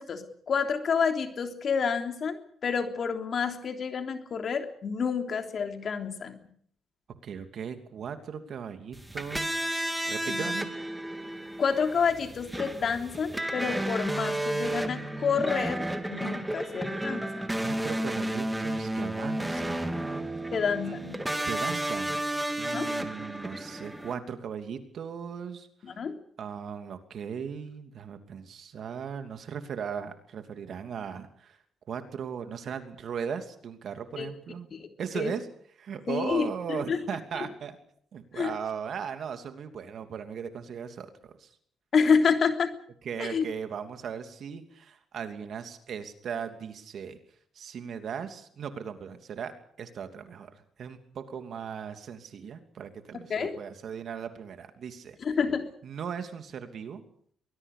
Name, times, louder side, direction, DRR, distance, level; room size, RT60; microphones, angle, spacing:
voice 1, 0.0-6.4 10.3-10.4 11.6-17.3 20.5-21.2 22.7-22.9 25.8-26.2 34.2-34.3 34.7-34.9 35.1-35.3 36.1-37.0 38.3-38.5 41.9-42.7 43.2-43.4 53.3-53.6 55.2-55.6, left 6 dB, 50° left, 5 dB, 3.4 m, -28 dB
voice 2, 7.2-9.6 10.0-10.7 17.6-20.1 20.8-21.0 21.5-22.2 22.6-25.7 26.4-31.6 31.9-34.7 35.0-35.5 35.8-37.7 38.1-41.5 43.0-47.2 47.5-49.5 49.8-50.5 50.8-55.2 55.8-57.0, right 7 dB, 60° right, 7 dB, 2.9 m, -37 dB
sound 1, 8.9-24.1, right 1 dB, 10° right, 2.7 m, -32 dB
23.5 x 20.5 x 6.8 m, 0.62 s
cardioid pair, 90°, 0 cm